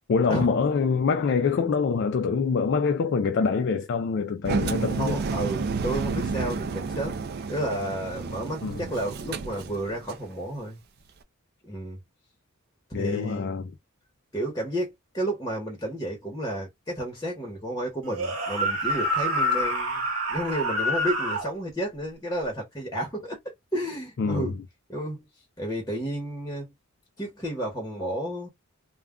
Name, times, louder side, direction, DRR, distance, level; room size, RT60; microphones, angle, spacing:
voice 1, 0.1-5.2 8.6-8.9 12.9-13.6 24.2-24.5, left 5 dB, 50° left, 0.3 m, -25 dB
Engine, 4.4-10.3, right 4 dB, 45° right, 0.4 m, -31 dB
voice 2, 5.0-7.2 7.5-10.8 11.6-12.0 12.9-13.6 14.3-23.4 23.7-24.6 24.9-25.3 25.6-26.7 27.2-28.5, right 1 dB, 15° left, 0.9 m, -31 dB
sound 1, 18.1-21.5, equal, 80° right, 1.1 m, -27 dB
2.2 x 2.1 x 3.6 m
head